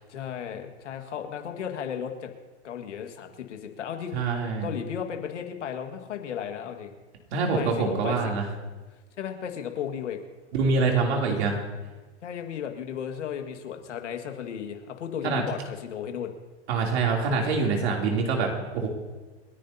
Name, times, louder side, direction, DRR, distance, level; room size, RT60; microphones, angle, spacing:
voice 1, 0.1-2.3 2.6-4.2 4.6-6.9 7.5-8.3 9.2-10.2 12.2-16.3, left 8 dB, 85° left, 5 dB, 1.9 m, -35 dB
voice 2, 4.1-4.7 7.3-8.4 10.5-11.6 15.2-15.4 16.7-18.9, right 4 dB, 65° right, 0 dB, 3.2 m, -25 dB
29.0 x 10.5 x 2.8 m, 1.2 s
hypercardioid pair, 120°, 35 cm